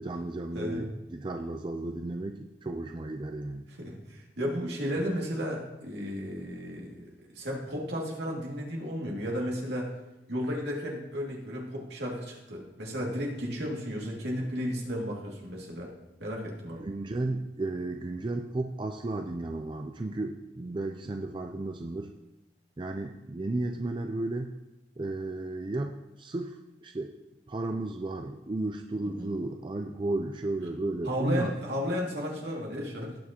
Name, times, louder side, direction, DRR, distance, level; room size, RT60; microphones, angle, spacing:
voice 1, 0.0-3.6 16.8-22.1 22.8-24.5 25.0-27.1 27.5-31.6, right 2 dB, 25° right, 5 dB, 0.4 m, -33 dB
voice 2, 0.5-0.9 3.7-9.9 10.3-15.9 16.2-16.8 29.0-29.3 31.0-33.2, equal, 70° right, -2 dB, 2.4 m, -34 dB
18.0 x 6.3 x 2.9 m, 0.97 s
head